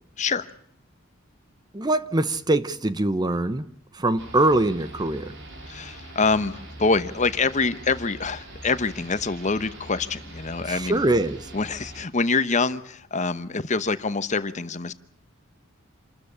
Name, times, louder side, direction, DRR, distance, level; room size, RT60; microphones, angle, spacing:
voice 1, 0.2-0.5 5.7-11.0 11.5-14.9, left 4 dB, 35° left, 1.0 m, -25 dB
voice 2, 1.7-3.7 3.9-5.3 10.6-11.5, right 2 dB, 20° right, 0.9 m, -23 dB
sound 1, 4.2-12.0, right 1 dB, 65° right, 4.6 m, -42 dB
27.5 x 13.5 x 9.9 m
head